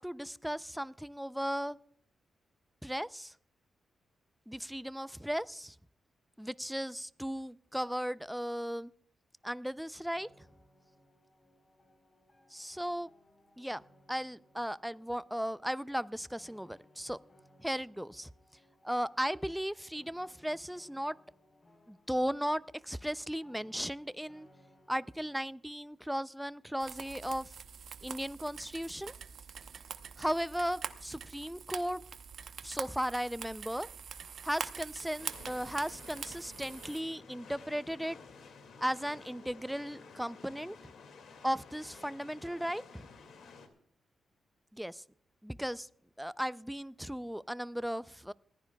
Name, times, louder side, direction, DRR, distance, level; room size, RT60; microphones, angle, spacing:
voice 1, 0.0-1.8 2.8-3.3 4.5-5.8 6.4-8.9 9.4-10.3 12.5-13.1 13.6-13.8 14.1-17.2 17.6-18.3 18.8-21.2 21.9-24.5 24.9-27.6 28.0-29.1 30.2-32.0 32.6-33.9 34.4-38.2 38.8-40.8 41.4-43.1 44.7-45.0 45.4-45.9 46.2-48.3, equal, ahead, 17 dB, 0.4 m, -36 dB
sound 1, 10.1-25.6, left 1 dB, 30° left, 3.7 m, -65 dB
sound 2, 26.8-37.0, right 7 dB, 70° right, 0.8 m, -44 dB
sound 3, 35.2-43.7, left 4 dB, 85° left, 2.2 m, -53 dB
20.0 x 15.0 x 2.3 m, 0.62 s
cardioid pair, 90°, 0 cm